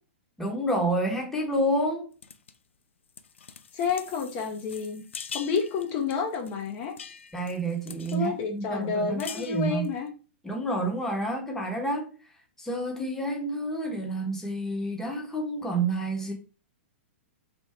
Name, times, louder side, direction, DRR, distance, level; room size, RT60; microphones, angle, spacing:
voice 1, 0.4-2.1 7.3-9.9 10.4-12.1 12.6-16.3, right 1 dB, 5° left, 1.1 m, -29 dB
sound 1, 2.2-2.6 3.1-8.3 8.6-8.7 9.0-10.0, left 6 dB, 90° left, 0.4 m, -44 dB
voice 2, 3.7-5.0 5.3-6.9 8.1-10.1, left 5 dB, 40° left, 0.9 m, -29 dB
3.5 x 2.6 x 4.4 m
hypercardioid pair, 125°, 6 cm